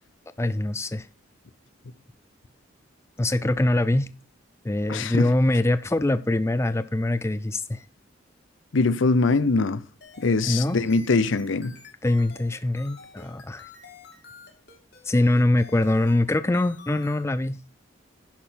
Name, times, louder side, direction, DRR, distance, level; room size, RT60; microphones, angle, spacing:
voice 1, 0.4-1.1 3.2-4.1 4.6-7.8 10.5-10.8 12.0-13.7 15.0-17.6, left 1 dB, 15° left, 0.4 m, -23 dB
voice 2, 4.9-5.3 8.7-9.8 10.2-11.7, left 3 dB, 70° left, 0.6 m, -22 dB
sound 1, 10.0-17.3, left 5 dB, 55° left, 2.6 m, -48 dB
10.5 x 6.4 x 5.7 m
head